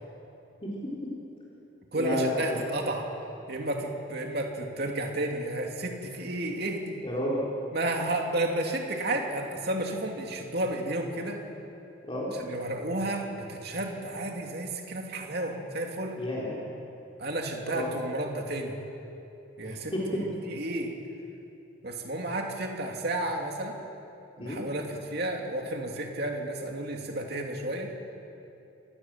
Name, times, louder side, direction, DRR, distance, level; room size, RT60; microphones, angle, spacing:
voice 1, 0.6-1.1 1.9-2.6 7.0-7.4 12.1-12.3 16.2-16.5 17.7-17.9 19.6-20.0 24.4-24.6, equal, 25° left, -5 dB, 3.8 m, -31 dB
voice 2, 1.9-3.0 3.5-7.0 7.7-11.4 12.4-16.1 17.2-18.8 19.6-20.9 21.8-23.8 24.4-27.9, right 1 dB, 50° right, 1 dB, 2.8 m, -32 dB
26.5 x 19.0 x 7.5 m, 2.9 s
head